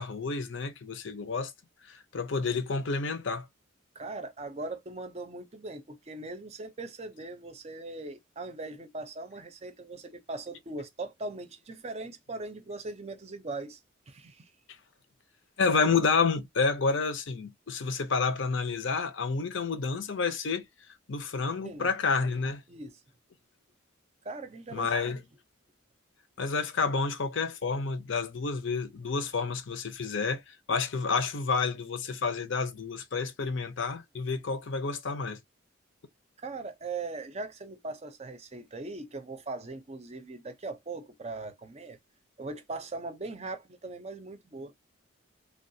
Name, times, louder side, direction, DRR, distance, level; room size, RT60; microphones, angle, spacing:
voice 1, 0.0-1.5 2.1-3.4 15.6-20.6 21.1-22.6 24.7-25.2 26.4-30.4 30.7-35.4, left 4 dB, 65° left, 0.6 m, -29 dB
voice 2, 3.9-13.8 14.1-14.5 21.6-21.9 22.7-23.0 24.2-25.2 36.4-42.0 42.4-44.7, right 3 dB, 30° right, 0.5 m, -40 dB
3.3 x 2.3 x 2.6 m
head